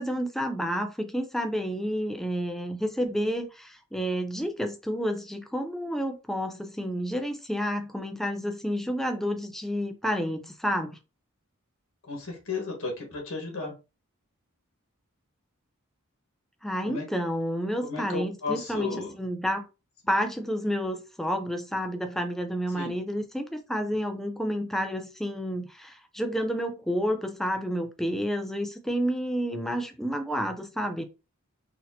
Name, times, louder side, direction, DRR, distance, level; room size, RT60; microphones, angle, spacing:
voice 1, 0.0-10.9 16.6-19.6 20.1-31.0, equal, ahead, 0.4 m, -30 dB
voice 2, 12.1-13.7 16.8-17.1 17.8-19.2 22.7-22.9, left 4 dB, 75° left, 1.3 m, -33 dB
4.1 x 2.7 x 2.7 m
head